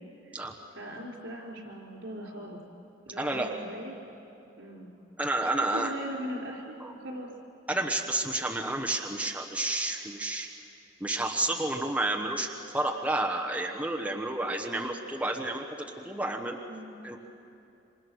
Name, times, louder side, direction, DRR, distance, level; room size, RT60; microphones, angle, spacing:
voice 1, 0.7-2.6 3.0-4.2 4.6-4.9 5.5-7.3 16.7-16.9, right 1 dB, 85° right, 0 dB, 4.7 m, -40 dB
voice 2, 3.2-3.5 5.2-5.9 6.8-6.9 7.7-10.5 11.0-15.6 16.0-16.6 17.0-17.2, right 1 dB, 5° right, 0 dB, 1.1 m, -30 dB
27.5 x 25.5 x 6.4 m, 2.8 s
head